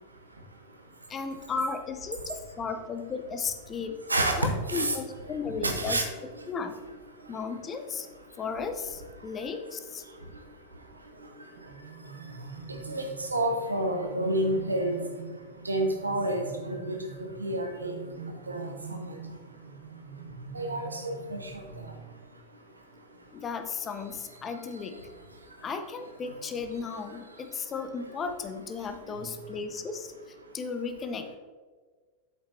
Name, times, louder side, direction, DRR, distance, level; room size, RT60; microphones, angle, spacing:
voice 1, 1.1-4.0 4.4-6.1 6.5-6.7 7.3-8.1 8.4-10.0 23.3-25.0 25.6-30.1 30.5-31.3, left 5 dB, 25° left, 7 dB, 0.7 m, -35 dB
voice 2, 4.1-5.0 5.6-6.0 12.9-13.0 13.3-15.0 15.6-17.0 17.4-17.9 18.5-19.0 20.5-21.5, right 1 dB, 80° right, 4 dB, 1.0 m, -29 dB
sound 1, 11.6-22.0, right 4 dB, 40° right, 1.2 m, -44 dB
8.0 x 7.9 x 2.7 m, 1.5 s
figure-of-eight pair, 90°, 0 cm